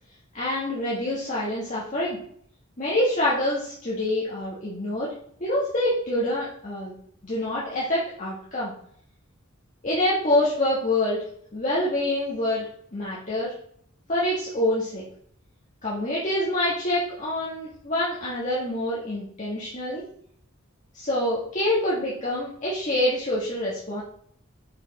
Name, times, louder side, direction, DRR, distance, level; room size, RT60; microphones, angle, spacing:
voice 1, 0.3-2.2 2.8-5.1 5.4-6.9 7.3-8.7 9.8-11.2 11.5-12.7 12.9-13.5 14.1-15.0 15.8-20.0 20.9-24.0, left 1 dB, 35° left, -7 dB, 1.4 m, -26 dB
5.5 x 5.0 x 4.0 m, 0.63 s
head